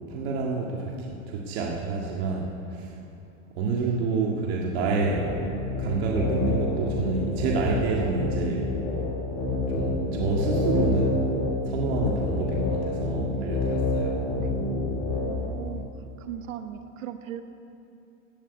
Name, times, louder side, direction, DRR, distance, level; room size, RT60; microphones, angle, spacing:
voice 1, 0.1-2.9 3.5-5.3 5.8-8.7 9.7-11.2 11.7-14.2, right 4 dB, 55° right, -2 dB, 1.9 m, -28 dB
sound 1, 4.7-15.5, left 2 dB, 30° left, 4.2 m, -28 dB
voice 2, 11.0-11.6 14.4-14.6 15.2-15.9 16.2-17.4, right 10 dB, 90° right, 8 dB, 1.2 m, -39 dB
15.5 x 7.4 x 9.5 m, 2.7 s
supercardioid pair, 160°, 38 cm